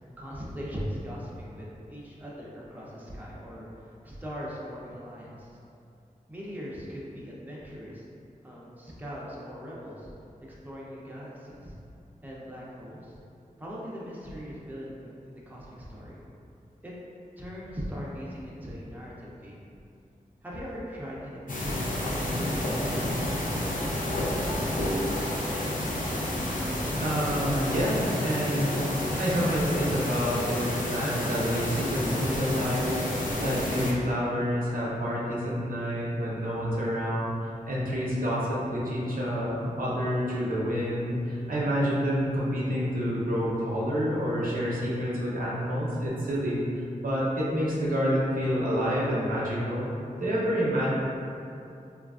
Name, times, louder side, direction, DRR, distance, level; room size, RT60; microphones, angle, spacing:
voice 1, 0.2-5.6 6.3-8.1 8.4-10.1 10.4-11.7 12.2-13.1 13.6-16.2 16.8-16.9 17.4-19.6 20.4-25.1, equal, 10° right, -6 dB, 0.6 m, -40 dB
sound 1, 21.5-33.9, left 1 dB, 65° left, 0.5 m, -30 dB
voice 2, 27.0-28.9 29.2-49.9 50.2-50.9, equal, 75° right, -6 dB, 0.6 m, -28 dB
3.1 x 2.4 x 2.4 m, 2.6 s
wide cardioid pair, 60°, 15 cm